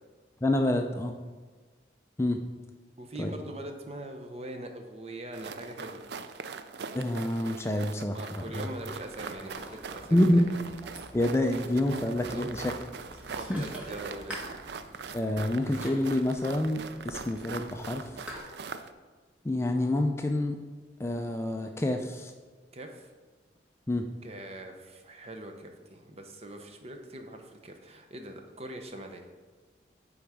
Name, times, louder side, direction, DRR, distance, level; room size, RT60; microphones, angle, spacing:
voice 1, 0.4-1.1 2.2-2.4 3.2-3.3 6.9-8.7 10.1-10.5 11.1-12.7 13.5-13.6 15.1-18.1 19.4-20.6 21.0-22.3 23.9-24.1, left 1 dB, 15° left, 5 dB, 0.3 m, -27 dB
voice 2, 3.0-6.0 8.1-10.3 12.3-12.5 13.3-14.4 22.7-23.1 24.2-29.3, right 1 dB, 35° right, 5 dB, 0.7 m, -42 dB
sound 1, 5.3-18.9, right 5 dB, 65° right, 0.4 m, -42 dB
Ocean, 8.3-18.4, equal, 5° right, 1.9 m, -48 dB
9.2 x 3.9 x 4.8 m, 1.4 s
head